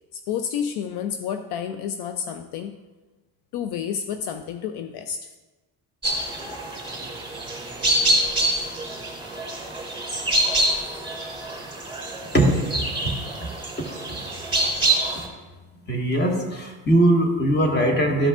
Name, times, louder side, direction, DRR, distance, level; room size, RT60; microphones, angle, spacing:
voice 1, 0.1-2.8 3.5-5.3, left 8 dB, 65° left, 8 dB, 0.6 m, -30 dB
sound 1, 6.0-15.3, right 1 dB, 10° right, 2.7 m, -26 dB
voice 2, 13.8-14.2 15.9-18.3, right 1 dB, 25° left, 1 dB, 1.7 m, -20 dB
13.0 x 5.3 x 2.5 m, 1.2 s
supercardioid pair, 85°, 42 cm